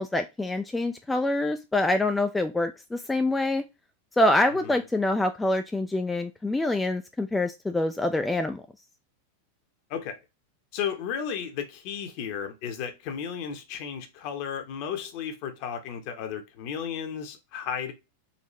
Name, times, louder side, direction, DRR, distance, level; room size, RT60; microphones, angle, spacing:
voice 1, 0.0-3.6 4.2-8.6, left 1 dB, 10° left, 0.3 m, -25 dB
voice 2, 10.7-17.9, left 8 dB, 45° left, 0.9 m, -34 dB
4.1 x 2.6 x 3.1 m
figure-of-eight pair, 90°, 0 cm